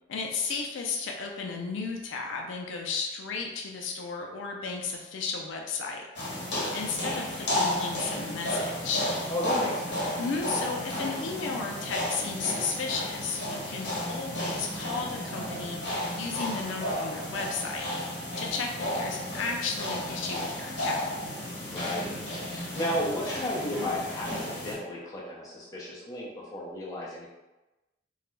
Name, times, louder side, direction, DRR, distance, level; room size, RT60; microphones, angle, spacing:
voice 1, 0.1-6.1 6.7-9.0 10.2-15.8 16.2-17.9 18.4-21.1, left 4 dB, 80° left, 1 dB, 0.4 m, -34 dB
sound 1, 6.2-24.8, left 1 dB, 65° left, 0.8 m, -33 dB
voice 2, 9.3-10.0 21.5-27.3, left 1 dB, 20° left, -6 dB, 0.5 m, -33 dB
2.2 x 2.1 x 3.0 m, 1.0 s
head